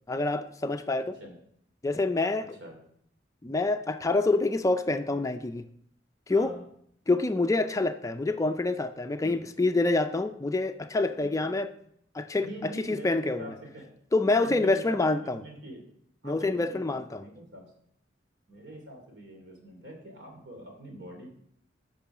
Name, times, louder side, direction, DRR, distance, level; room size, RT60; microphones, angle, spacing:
voice 1, 0.1-1.2 1.8-2.5 3.4-5.7 6.3-6.5 7.1-11.7 12.1-13.5 14.1-15.4 16.2-17.2, left 2 dB, 20° left, 8 dB, 0.4 m, -27 dB
voice 2, 6.3-6.6 9.2-9.4 11.2-11.6 12.4-13.9 14.3-15.9 16.2-17.6 18.5-21.3, right 1 dB, 75° right, 1 dB, 2.9 m, -44 dB
8.5 x 6.1 x 6.0 m, 0.69 s
head